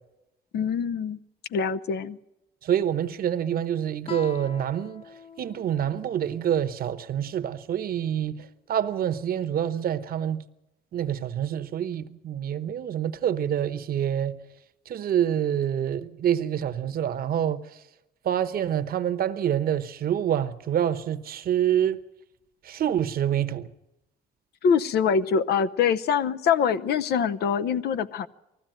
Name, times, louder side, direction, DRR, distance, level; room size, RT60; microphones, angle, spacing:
voice 1, 0.5-1.2 1.5-2.2 24.6-28.3, left 6 dB, 80° left, 0.8 m, -24 dB
voice 2, 2.6-5.0 5.4-10.4 10.9-14.4 14.9-17.8 18.2-22.0 22.6-23.7, right 10 dB, 65° right, 1.0 m, -27 dB
Guitar, 4.0-7.3, left 6 dB, 35° left, 0.7 m, -44 dB
19.5 x 15.0 x 9.0 m
cardioid pair, 90°, 16 cm